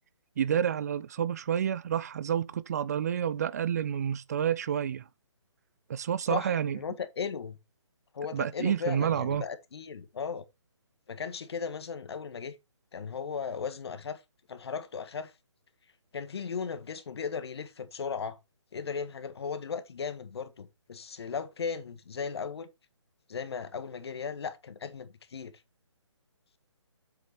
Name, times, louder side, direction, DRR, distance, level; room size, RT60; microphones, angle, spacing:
voice 1, 0.4-5.0 5.9-6.8 8.3-9.4, right 9 dB, 35° right, 0.4 m, -29 dB
voice 2, 6.3-7.6 8.1-10.4 11.1-12.6 12.9-14.2 14.5-15.3 16.1-18.4 18.7-22.7 23.3-25.5, left 6 dB, 55° left, 1.6 m, -36 dB
7.9 x 5.9 x 4.4 m
hypercardioid pair, 150°, 16 cm